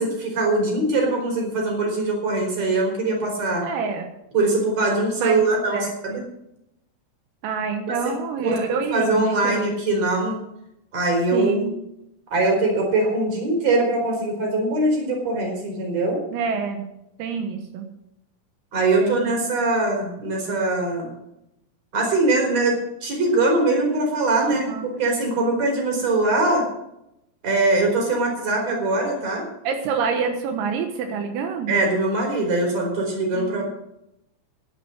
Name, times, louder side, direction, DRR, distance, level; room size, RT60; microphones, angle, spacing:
voice 1, 0.0-3.6 4.3-6.2 8.9-10.4 10.9-11.7 12.3-16.2 18.7-21.1 21.9-26.6 27.4-29.5 31.7-33.6, right 2 dB, 35° right, 1 dB, 5.1 m, -22 dB
voice 2, 3.6-4.1 5.2-5.4 5.7-5.9 7.4-9.6 11.3-11.7 16.3-16.9 17.2-17.9 19.0-19.3 24.4-24.9 29.7-31.8 33.3-33.6, right 5 dB, 80° right, 4 dB, 4.0 m, -27 dB
12.0 x 11.0 x 6.4 m, 0.83 s
omnidirectional pair, 5.9 m